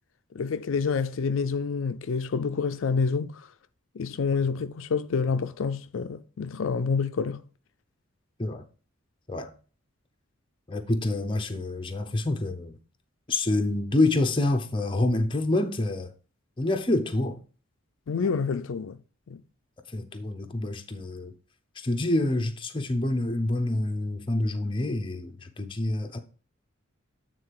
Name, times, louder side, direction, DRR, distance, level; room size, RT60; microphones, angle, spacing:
voice 1, 0.3-3.4 4.0-7.4 18.1-19.0 19.3-19.4, left 5 dB, 75° left, 0.4 m, -28 dB
voice 2, 10.7-12.8 13.3-16.1 16.6-17.4 19.9-21.3 21.8-26.2, left 2 dB, 25° left, 0.8 m, -27 dB
8.7 x 3.8 x 4.7 m
head